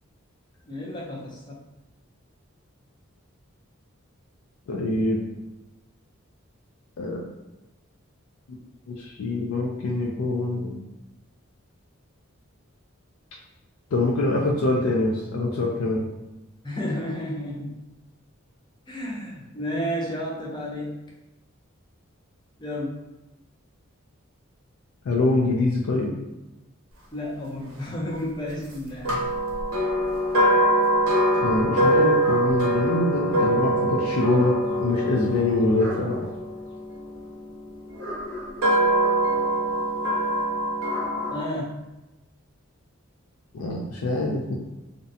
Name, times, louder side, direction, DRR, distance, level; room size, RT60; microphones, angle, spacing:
voice 1, 0.7-1.6 16.6-17.8 18.9-21.0 22.6-23.0 27.1-29.1 41.3-41.7, equal, 20° left, -3 dB, 0.5 m, -31 dB
voice 2, 4.7-5.2 7.0-7.2 8.9-10.8 13.9-16.0 25.1-26.1 31.4-36.3 43.5-44.5, left 2 dB, 90° left, -2 dB, 0.4 m, -24 dB
sound 1, 29.0-37.2 37.9-41.4, right 1 dB, 85° right, 0.7 m, -23 dB
2.5 x 2.1 x 2.6 m, 0.99 s
head